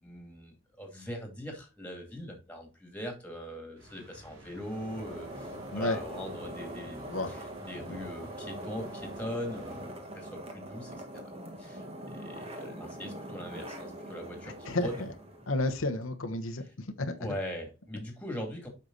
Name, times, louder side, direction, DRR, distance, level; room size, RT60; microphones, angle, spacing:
voice 1, 0.0-11.3 11.6-14.5 14.8-15.0 16.6-16.7 17.2-18.7, equal, 5° left, 2 dB, 2.4 m, -41 dB
sound 1, 3.8-10.5, right 1 dB, 80° right, 4.0 m, -53 dB
sound 2, 4.5-16.1, right 1 dB, 30° right, 1.5 m, -43 dB
voice 2, 15.5-16.6 17.0-17.1, left 2 dB, 90° left, 6 dB, 1.1 m, -30 dB
8.1 x 5.9 x 4.0 m, 0.30 s
head